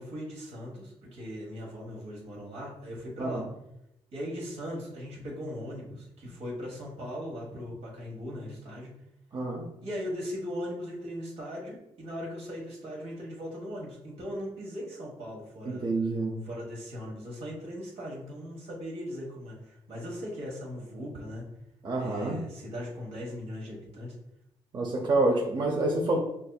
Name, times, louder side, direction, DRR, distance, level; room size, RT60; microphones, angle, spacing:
voice 1, 0.0-3.5 4.1-8.9 9.8-15.9 16.5-21.5 22.0-24.2, equal, 80° right, -2 dB, 1.4 m, -39 dB
voice 2, 9.3-9.7 15.6-16.5 21.8-22.4 24.7-26.2, right 2 dB, 45° right, 0 dB, 0.6 m, -28 dB
6.0 x 2.7 x 2.3 m, 0.82 s
cardioid pair, 100°, 10 cm